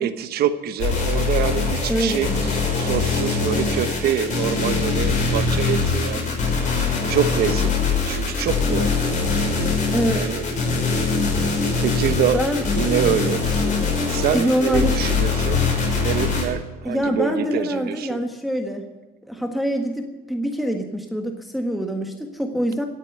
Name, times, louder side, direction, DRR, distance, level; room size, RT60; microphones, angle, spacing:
voice 1, 0.0-6.3 7.1-8.9 10.1-10.4 11.8-12.4 12.7-13.4 14.1-15.6 16.0-18.2, right 9 dB, 70° right, 11 dB, 1.1 m, -25 dB
sound 1, 0.8-16.4, left 4 dB, 45° left, 5.6 m, -22 dB
voice 2, 1.9-2.6 9.9-10.3 12.2-12.6 13.3-13.6 14.3-15.1 16.8-18.9 19.3-22.8, equal, ahead, 3 dB, 1.5 m, -25 dB
17.5 x 8.3 x 8.1 m, 1.2 s
cardioid pair, 110°, 17 cm